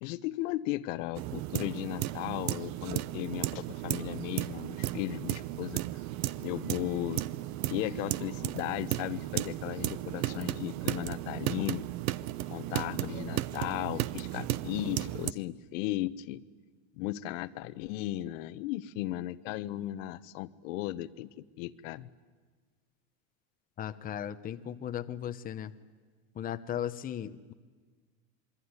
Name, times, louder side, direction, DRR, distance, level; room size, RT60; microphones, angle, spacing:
voice 1, 0.0-5.8 6.4-7.2 7.7-11.8 12.5-16.4 17.0-22.1, left 16 dB, 65° left, 14 dB, 1.1 m, -36 dB
sound 1, 1.2-15.3, right 16 dB, 45° right, 0.8 m, -35 dB
voice 2, 23.8-25.7 26.4-27.5, left 10 dB, 20° left, 9 dB, 0.9 m, -36 dB
26.5 x 23.0 x 9.7 m, 1.4 s
supercardioid pair, 140°, 41 cm